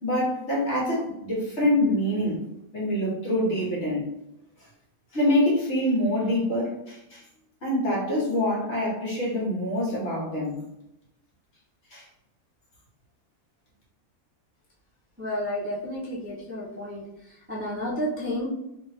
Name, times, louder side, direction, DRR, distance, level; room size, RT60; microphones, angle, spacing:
voice 1, 0.0-2.4 2.7-4.0 5.1-7.2 7.6-10.6 11.9-12.1, left 1 dB, 55° left, -5 dB, 1.6 m, -25 dB
voice 2, 15.2-18.5, equal, 15° right, -6 dB, 0.4 m, -31 dB
3.3 x 3.1 x 3.2 m, 0.84 s
omnidirectional pair, 1.5 m